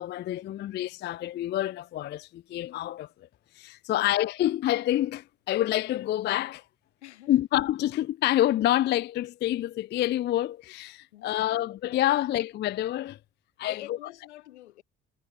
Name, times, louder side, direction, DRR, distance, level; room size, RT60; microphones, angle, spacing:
voice 1, 0.0-3.1 3.6-6.6 7.3-13.2 13.6-13.8, left 13 dB, 30° left, 0.4 m, -27 dB
voice 2, 3.9-4.2 7.0-7.4 11.1-11.6 13.7-14.8, left 15 dB, 80° left, 3.5 m, -46 dB
figure-of-eight pair, 55°, 34 cm